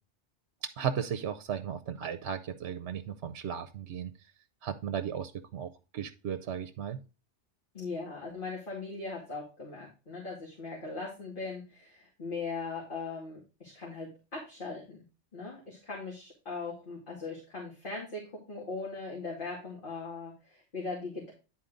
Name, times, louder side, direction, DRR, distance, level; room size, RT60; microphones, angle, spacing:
voice 1, 0.8-4.1 4.6-7.0, right 8 dB, 70° right, 11 dB, 0.9 m, -35 dB
voice 2, 7.7-15.0 15.3-18.2 18.5-21.3, left 4 dB, 45° left, -5 dB, 2.6 m, -39 dB
10.0 x 4.3 x 3.8 m, 0.32 s
omnidirectional pair, 1.2 m